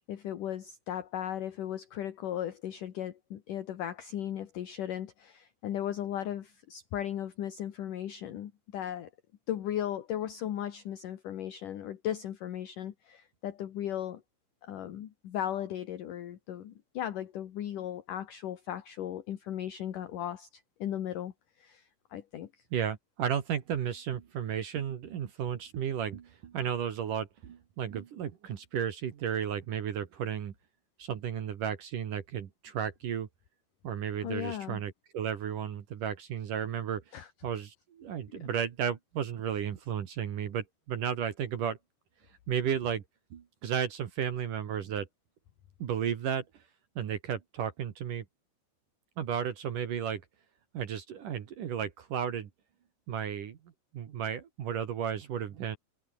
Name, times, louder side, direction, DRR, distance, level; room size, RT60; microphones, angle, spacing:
voice 1, 0.1-9.1 9.5-14.2 14.6-21.3 21.6-22.5 34.2-34.8 37.1-37.3 38.3-38.4, left 11 dB, 60° left, 2.5 m, -37 dB
voice 2, 22.7-30.5 31.0-33.3 33.8-37.0 37.4-41.8 42.5-43.0 43.3-45.1 45.8-46.4 47.0-48.2 49.2-50.2 50.7-52.5 53.1-53.6 53.9-55.8, right 8 dB, 55° right, 2.6 m, -33 dB
omnidirectional pair, 5.7 m